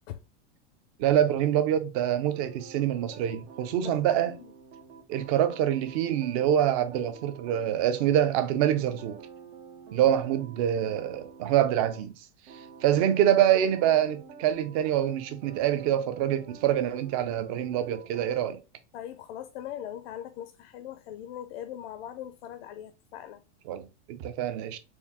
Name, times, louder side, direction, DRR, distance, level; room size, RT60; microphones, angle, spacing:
voice 1, 1.0-4.4 5.1-9.2 9.9-12.2 12.8-18.6 23.7-24.8, right 11 dB, 35° right, 0.4 m, -25 dB
sound 1, 2.3-12.0 12.5-18.3, right 6 dB, 85° right, 1.1 m, -48 dB
voice 2, 3.8-4.5 10.1-10.2 18.9-23.4, left 11 dB, 60° left, 0.5 m, -41 dB
4.4 x 2.3 x 3.4 m
supercardioid pair, 155°, 33 cm